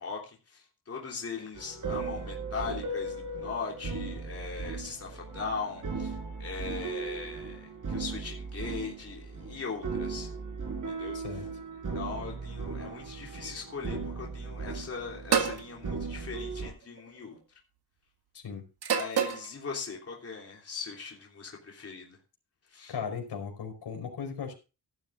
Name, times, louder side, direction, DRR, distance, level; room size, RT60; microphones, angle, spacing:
voice 1, 0.0-10.3 10.9-11.2 11.9-17.4 18.9-22.2 22.7-22.9, left 5 dB, 35° left, -1 dB, 3.4 m, -39 dB
sound 1, 1.5-16.7, right 4 dB, 50° right, 4.7 m, -37 dB
voice 2, 11.1-11.4 18.3-18.7 22.9-24.5, left 6 dB, 80° left, 4 dB, 5.0 m, -37 dB
sound 2, 15.3-15.6 16.8-17.2 18.8-19.5, right 7 dB, 70° right, 2.2 m, -27 dB
17.0 x 12.5 x 2.5 m, 0.32 s
wide cardioid pair, 150°, 40 cm